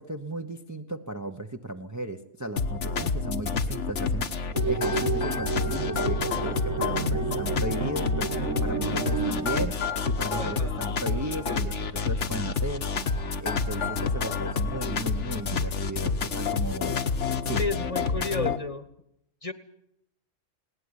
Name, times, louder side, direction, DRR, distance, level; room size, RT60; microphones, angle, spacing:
voice 1, 0.0-4.3 4.7-8.3 8.6-13.0 13.4-17.0 17.4-17.6, right 1 dB, 15° right, 5 dB, 0.8 m, -35 dB
sound 1, 2.6-18.6, left 4 dB, 70° left, 1.5 m, -28 dB
sound 2, 4.6-9.7, right 4 dB, 70° right, 1.7 m, -30 dB
voice 2, 10.4-10.9 17.5-18.9 19.4-19.5, left 3 dB, 30° left, 12 dB, 1.3 m, -32 dB
20.5 x 18.0 x 9.8 m, 0.77 s
omnidirectional pair, 1.3 m